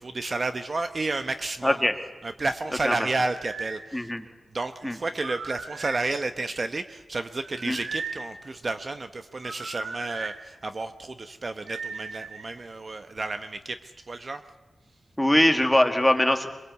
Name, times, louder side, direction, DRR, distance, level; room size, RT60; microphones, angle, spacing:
voice 1, 0.0-1.8 2.2-4.1 4.5-14.4, right 3 dB, 35° right, 9 dB, 0.9 m, -31 dB
voice 2, 1.6-2.0 2.8-3.1 3.9-4.3 4.8-5.0 7.6-7.8 15.2-16.5, left 1 dB, 5° left, 5 dB, 1.8 m, -22 dB
sound 1, 3.1-3.8 5.1-6.1 7.4-8.2 9.4-10.3 11.7-12.5, right 4 dB, 90° right, 2.9 m, -37 dB
23.5 x 23.0 x 8.3 m, 1.1 s
wide cardioid pair, 130°, 0 cm